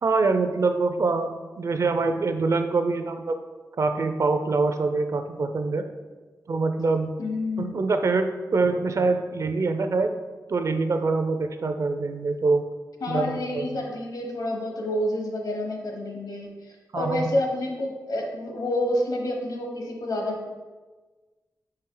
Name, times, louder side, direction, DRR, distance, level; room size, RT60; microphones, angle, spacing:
voice 1, 0.0-3.4 3.8-5.8 6.5-7.1 7.6-10.1 10.5-12.6 13.1-13.8 16.9-17.2, right 3 dB, 50° right, 7 dB, 0.4 m, -24 dB
voice 2, 7.2-7.7 13.0-20.6, left 1 dB, 65° left, 2 dB, 1.0 m, -29 dB
5.6 x 4.3 x 3.8 m, 1.3 s
wide cardioid pair, 155°, 7 cm